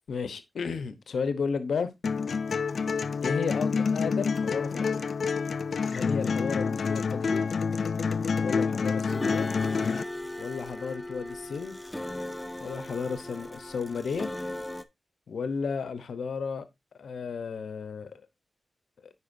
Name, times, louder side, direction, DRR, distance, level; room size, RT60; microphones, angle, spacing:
voice 1, 0.1-1.9 3.2-5.1 5.9-7.5 8.4-9.5 10.4-11.7 12.6-14.3 15.3-16.7 17.0-18.1, left 5 dB, 90° left, 0.8 m, -33 dB
sound 1, 2.0-10.0, left 5 dB, 65° left, 0.3 m, -28 dB
sound 2, 9.1-14.8, left 1 dB, 10° left, 0.5 m, -38 dB
9.7 x 4.8 x 2.6 m
wide cardioid pair, 110°, 0 cm